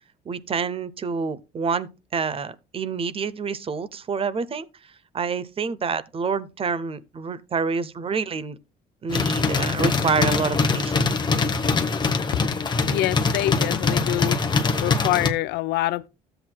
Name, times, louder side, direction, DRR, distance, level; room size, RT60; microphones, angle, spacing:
voice 1, 0.3-4.7 5.1-8.6 9.0-11.1, right 5 dB, 35° right, 0.7 m, -27 dB
sound 1, 9.1-15.3, left 4 dB, 25° left, 1.0 m, -23 dB
voice 2, 12.8-14.4 14.8-16.1, left 15 dB, 85° left, 0.6 m, -25 dB
13.0 x 7.8 x 2.2 m
cardioid pair, 110°, 17 cm